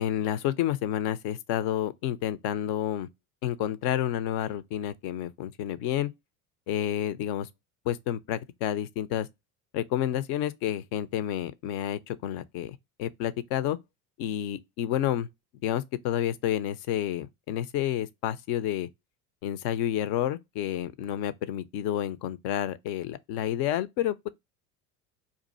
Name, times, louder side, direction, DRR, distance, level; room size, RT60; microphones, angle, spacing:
voice 1, 0.0-3.1 3.4-6.1 6.7-7.5 7.9-9.3 9.7-13.8 14.2-15.3 15.6-18.9 19.4-24.3, left 11 dB, 55° left, 0.6 m, -30 dB
2.7 x 2.4 x 4.1 m
hypercardioid pair, 70°, 46 cm